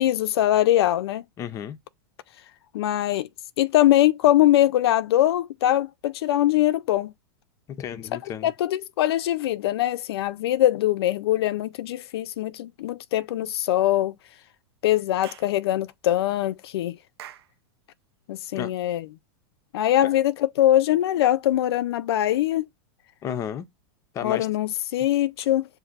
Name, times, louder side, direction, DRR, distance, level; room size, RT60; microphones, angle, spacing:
voice 1, 0.0-1.2 2.7-3.3 3.6-7.1 8.4-14.1 14.8-17.0 18.3-19.1 19.7-22.7 24.2-25.6, left 13 dB, 80° left, 0.4 m, -22 dB
voice 2, 1.4-1.8 7.8-8.5 18.5-18.7 20.0-20.1 23.2-23.7 24.1-24.5, left 9 dB, 25° left, 0.5 m, -32 dB
Clapping / Chirp tweet, 15.2-15.5 17.2-17.5, right 11 dB, 80° right, 0.6 m, -43 dB
6.4 x 2.6 x 2.4 m
supercardioid pair, 145°, 13 cm